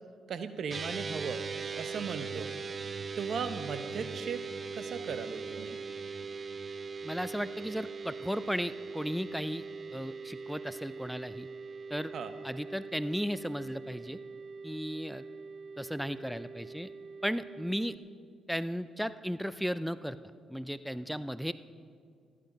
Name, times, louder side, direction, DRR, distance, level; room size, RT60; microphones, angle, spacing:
voice 1, 0.3-1.4 1.8-2.5 3.1-4.4 4.7-5.8 12.1-12.3, right 6 dB, 65° right, 10 dB, 0.9 m, -37 dB
sound 1, 0.7-18.0, right 5 dB, 45° right, 0.5 m, -41 dB
voice 2, 7.0-11.5 11.9-12.1 12.4-14.2 14.6-15.2 15.8-16.9 17.2-18.0 18.5-20.2 20.5-21.5, equal, ahead, 14 dB, 0.5 m, -35 dB
14.0 x 11.0 x 5.3 m, 2.1 s
hypercardioid pair, 50°, 0 cm